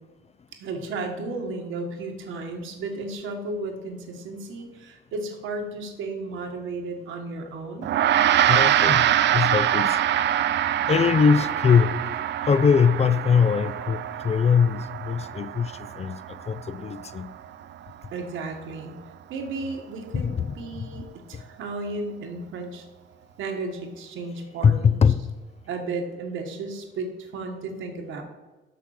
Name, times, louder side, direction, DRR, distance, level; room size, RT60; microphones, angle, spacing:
voice 1, 0.6-7.9 18.1-18.9 19.3-21.0 21.3-22.9 23.4-25.0 25.7-28.2, right 3 dB, 80° right, 3 dB, 1.5 m, -34 dB
Gong, 7.8-17.4, right 11 dB, 65° right, 0.5 m, -24 dB
voice 2, 8.5-10.0 10.3-10.4 10.9-12.0 12.5-17.3 20.1-21.0 21.3-21.4 24.6-25.3, left 6 dB, 35° left, 14 dB, 0.4 m, -22 dB
6.8 x 6.1 x 6.5 m, 1.2 s
cardioid pair, 90°, 20 cm